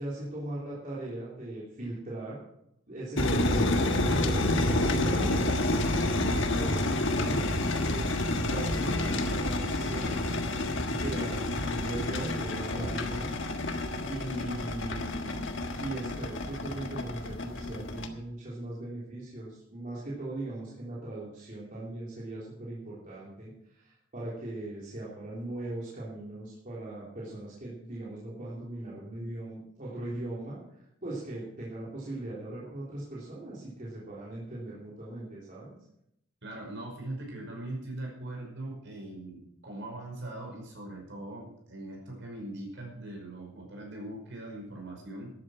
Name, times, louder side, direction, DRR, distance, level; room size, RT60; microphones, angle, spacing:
voice 1, 0.0-2.4 2.9-10.2 10.8-13.3 13.6-15.5 15.8-30.6 31.0-35.7, right 2 dB, 40° right, -6 dB, 3.3 m, -39 dB
sound 1, 3.2-18.1, left 1 dB, 60° left, 1.5 m, -29 dB
voice 2, 36.4-45.3, right 1 dB, 60° right, 0 dB, 5.4 m, -41 dB
12.5 x 11.0 x 6.2 m, 0.78 s
head